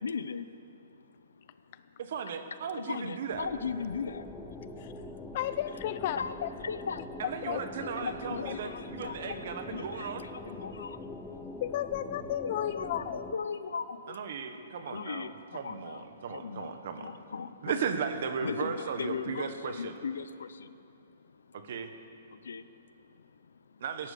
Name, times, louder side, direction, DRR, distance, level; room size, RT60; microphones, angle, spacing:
voice 1, 0.0-2.0 2.7-5.4 6.2-6.3 6.6-7.3 7.8-11.6 12.6-17.8 18.4-21.6 22.3-23.8, left 5 dB, 90° left, 13 dB, 0.7 m, -40 dB
voice 2, 2.0-3.5 7.2-10.3 14.1-17.1 17.6-20.0 21.5-21.9 23.8-24.1, right 6 dB, 60° right, 8 dB, 1.4 m, -36 dB
sound 1, 3.3-13.4, left 2 dB, 5° left, 0.9 m, -43 dB
voice 3, 5.3-6.5 7.5-7.6 8.4-8.5 11.6-13.2, left 12 dB, 45° left, 13 dB, 0.6 m, -33 dB
17.0 x 11.0 x 6.8 m, 2.6 s
hypercardioid pair, 150°, 0 cm